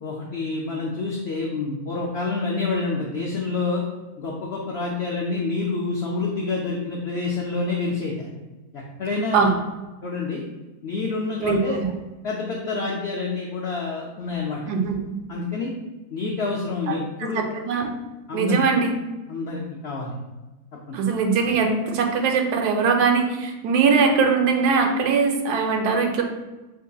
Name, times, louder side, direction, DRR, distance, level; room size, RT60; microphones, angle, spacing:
voice 1, 0.0-3.8 4.2-8.3 8.7-9.5 10.0-10.4 10.8-11.8 12.2-14.6 15.3-15.7 16.1-17.4 18.3-18.7 19.3-20.2 20.9-21.0, left 3 dB, 80° left, -2 dB, 0.5 m, -28 dB
voice 2, 11.4-11.9 14.7-15.1 16.9-17.9 18.3-18.9 20.9-26.2, right 5 dB, 85° right, 3 dB, 1.1 m, -21 dB
4.5 x 2.7 x 2.3 m, 1.1 s
omnidirectional pair, 1.6 m